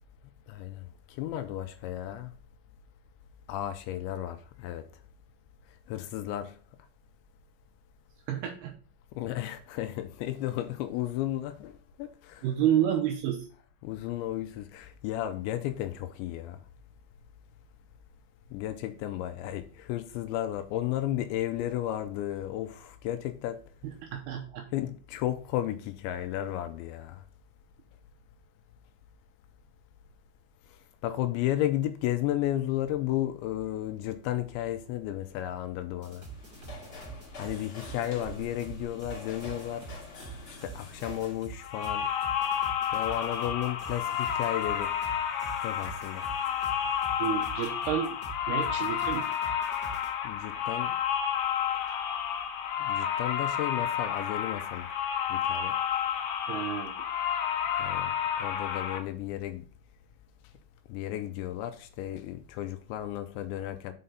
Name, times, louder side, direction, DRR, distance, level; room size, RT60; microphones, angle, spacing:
voice 1, 0.5-2.3 3.5-4.9 5.9-6.6 9.2-12.5 13.8-16.6 18.5-23.6 24.7-27.2 31.0-36.2 37.4-39.9 40.6-42.1 42.9-44.9 45.6-46.3 50.2-51.0 52.8-54.9 55.3-55.8 57.8-58.1 58.4-59.6 60.9-63.9, left 13 dB, 85° left, 2.8 m, -33 dB
voice 2, 8.3-8.7 12.4-13.4 24.1-24.6 47.2-48.1 48.5-49.2 56.5-56.9, right 10 dB, 80° right, 2.5 m, -29 dB
sound 1, 36.0-50.1, right 5 dB, 25° right, 1.7 m, -46 dB
sound 2, 36.1-41.5, left 2 dB, 35° left, 2.4 m, -46 dB
sound 3, 41.6-59.0, left 9 dB, 70° left, 2.9 m, -31 dB
6.6 x 5.6 x 3.8 m
omnidirectional pair, 5.5 m